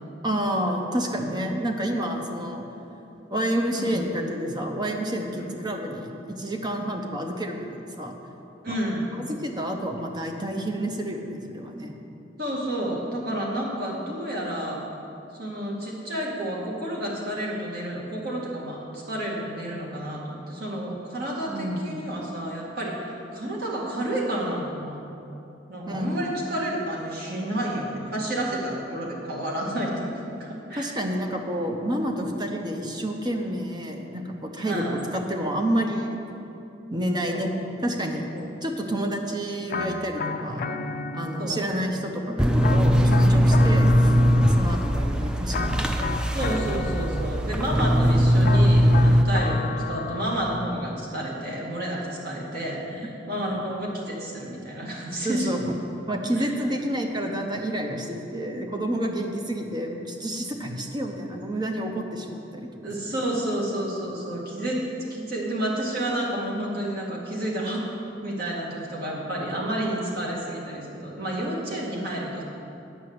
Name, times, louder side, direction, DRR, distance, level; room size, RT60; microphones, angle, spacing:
voice 1, 0.2-2.7 3.3-8.1 8.7-8.8 9.2-12.0 21.5-21.9 25.9-26.2 30.8-34.9 35.1-36.2 36.9-37.5 37.8-38.3 38.6-40.7 41.1-45.9 55.2-55.7 56.1-62.9, right 1 dB, 25° right, 2 dB, 0.8 m, -29 dB
voice 2, 3.7-4.0 5.4-5.5 8.6-9.1 12.4-14.8 15.3-25.0 25.7-30.9 34.7-35.0 37.3-37.4 38.3-38.5 41.4-41.6 46.3-55.5 56.4-56.5 62.8-67.9 68.2-72.4, right 1 dB, 55° right, -3 dB, 2.0 m, -30 dB
sound 1, 39.7-41.8 42.6-45.0 45.5-47.6 48.4-50.8, left 3 dB, 50° left, 0.5 m, -32 dB
sound 2, 42.4-49.2, equal, 5° right, 0.4 m, -20 dB
9.9 x 5.4 x 7.8 m, 2.8 s
head